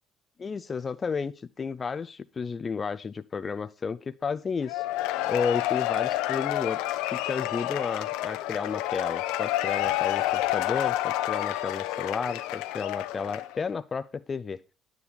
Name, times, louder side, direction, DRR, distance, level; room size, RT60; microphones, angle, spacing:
voice 1, 0.4-4.8 5.3-14.6, left 5 dB, 35° left, 13 dB, 0.4 m, -32 dB
Cheering / Applause / Crowd, 4.7-13.6, left 15 dB, 80° left, 0.8 m, -29 dB
9.4 x 9.3 x 3.3 m, 0.35 s
supercardioid pair, 70°, 0 cm